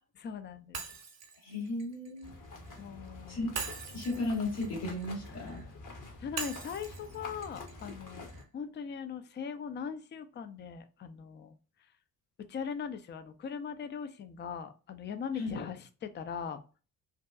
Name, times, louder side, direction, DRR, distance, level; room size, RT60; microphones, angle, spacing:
voice 1, 0.1-0.8 2.8-3.5 5.4-5.5 6.2-11.5 12.4-16.6, left 7 dB, 25° left, 10 dB, 0.4 m, -40 dB
Shatter, 0.7-2.8 3.5-5.6 6.4-8.5, right 5 dB, 35° right, 0.7 m, -43 dB
voice 2, 1.4-2.3 3.3-3.5 3.9-5.6 15.4-15.6, left 2 dB, 80° left, -5 dB, 1.5 m, -35 dB
sound 1, 2.2-8.4, left 2 dB, 45° left, 0.9 m, -47 dB
2.7 x 2.2 x 2.2 m, 0.35 s
hypercardioid pair, 45°, 45 cm